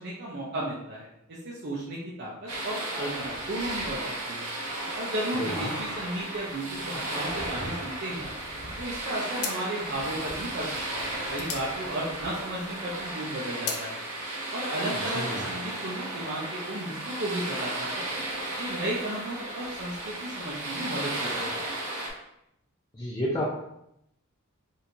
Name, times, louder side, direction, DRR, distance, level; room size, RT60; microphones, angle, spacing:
voice 1, 0.0-4.0 4.3-4.5 4.9-8.3 8.8-14.0 14.5-18.1 18.6-21.6, right 1 dB, 50° right, -5 dB, 0.6 m, -34 dB
sound 1, 2.5-22.1, right 1 dB, 90° right, 0.9 m, -34 dB
voice 2, 5.3-5.7 15.2-15.5 22.9-23.5, equal, 20° left, -4 dB, 0.5 m, -31 dB
sound 2, 8.7-8.9 9.3-12.7 13.1-13.9, left 6 dB, 75° left, 0.5 m, -37 dB
4.4 x 2.7 x 2.6 m, 0.80 s
head